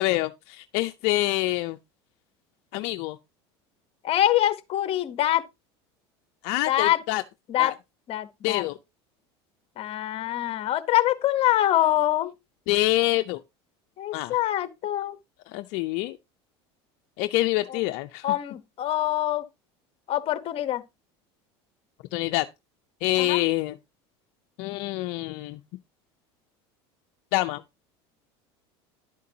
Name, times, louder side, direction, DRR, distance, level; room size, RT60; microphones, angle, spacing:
voice 1, 0.0-1.8 2.7-3.2 6.4-7.2 7.6-7.7 8.4-8.8 12.7-13.4 14.1-14.4 15.5-16.2 17.2-18.3 22.1-22.5 23.0-23.8 24.6-25.6 27.3-27.6, left 18 dB, 65° left, 0.6 m, -26 dB
voice 2, 4.0-5.4 6.7-7.0 7.5-7.7 8.1-8.6 9.8-12.3 14.0-15.2 17.7-17.8 18.2-19.4 20.1-20.8 23.2-23.4, left 13 dB, 45° left, 1.1 m, -24 dB
11.5 x 8.3 x 2.8 m
supercardioid pair, 105°, 13 cm